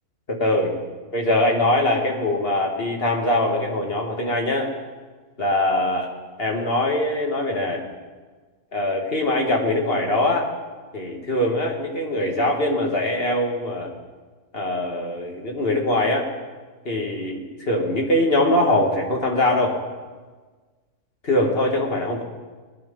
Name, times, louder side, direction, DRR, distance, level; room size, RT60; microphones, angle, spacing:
voice 1, 0.3-0.7 1.1-4.7 5.4-6.1 6.4-7.8 8.7-10.5 10.9-13.9 14.5-16.3 16.9-19.8 21.2-22.2, left 1 dB, 40° left, 1 dB, 2.1 m, -22 dB
20.5 x 10.0 x 5.3 m, 1.4 s
omnidirectional pair, 1.6 m